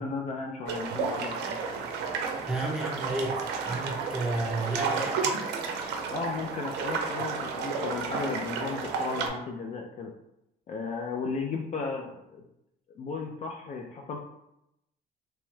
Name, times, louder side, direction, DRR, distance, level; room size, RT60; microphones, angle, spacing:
voice 1, 0.0-1.6 6.1-10.1 10.7-12.4 12.9-14.2, left 4 dB, 45° left, 1 dB, 0.4 m, -35 dB
sound 1, 0.7-9.3, right 5 dB, 80° right, 0.5 m, -32 dB
voice 2, 2.5-5.5, right 2 dB, 5° right, -3 dB, 0.8 m, -32 dB
2.9 x 2.2 x 3.1 m, 0.83 s
cardioid pair, 110°, 17 cm